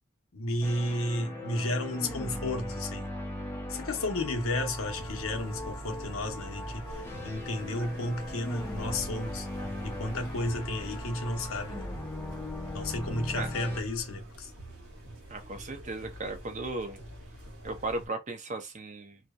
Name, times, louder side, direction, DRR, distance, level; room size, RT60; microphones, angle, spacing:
voice 1, 0.3-3.1 3.7-9.5 9.8-11.9 12.7-14.5, left 1 dB, 75° left, 0.7 m, -33 dB
sound 1, 0.6-13.8, left 1 dB, 10° left, 0.6 m, -39 dB
sound 2, 4.8-18.1, right 1 dB, 85° right, 1.2 m, -46 dB
voice 2, 15.3-17.0 17.6-19.2, right 2 dB, 35° right, 0.5 m, -36 dB
2.7 x 2.1 x 2.2 m
head